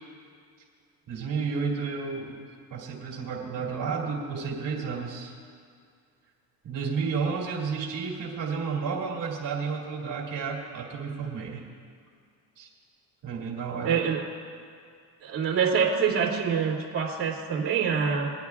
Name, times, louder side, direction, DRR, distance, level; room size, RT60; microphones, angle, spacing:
voice 1, 1.1-2.4 2.7-5.3 6.6-11.6 12.6-12.7 13.2-13.9, right 5 dB, 55° right, -2 dB, 2.7 m, -31 dB
voice 2, 13.8-14.2 15.2-18.3, right 6 dB, 35° right, -8 dB, 2.6 m, -25 dB
23.0 x 9.5 x 2.4 m, 2.1 s
cardioid pair, 100°, 39 cm